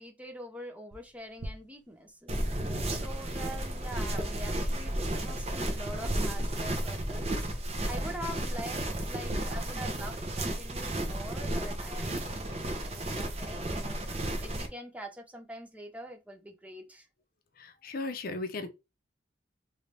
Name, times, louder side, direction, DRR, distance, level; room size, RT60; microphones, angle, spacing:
voice 1, 0.0-2.4 2.9-7.3 7.7-14.0 14.4-17.1, equal, 10° right, 0.5 m, -44 dB
sound 1, 0.9-9.3, right 1 dB, 75° right, 0.7 m, -52 dB
sound 2, 2.3-14.7, right 1 dB, 35° right, 0.7 m, -33 dB
voice 2, 17.6-18.7, left 3 dB, 50° left, 0.5 m, -36 dB
3.1 x 2.7 x 3.2 m
head